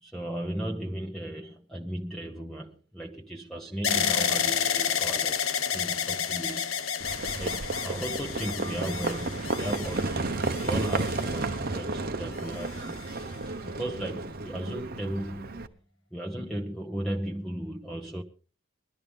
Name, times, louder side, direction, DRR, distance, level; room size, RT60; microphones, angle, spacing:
voice 1, 0.0-6.8 7.4-10.2 10.6-15.6 16.1-18.2, right 1 dB, ahead, 1.0 m, -36 dB
sound 1, 3.8-11.9 12.6-13.2, left 8 dB, 75° left, 1.0 m, -30 dB
Livestock farm animals working animals, 7.0-15.7, right 3 dB, 45° right, 1.0 m, -32 dB
21.0 x 12.5 x 3.5 m
head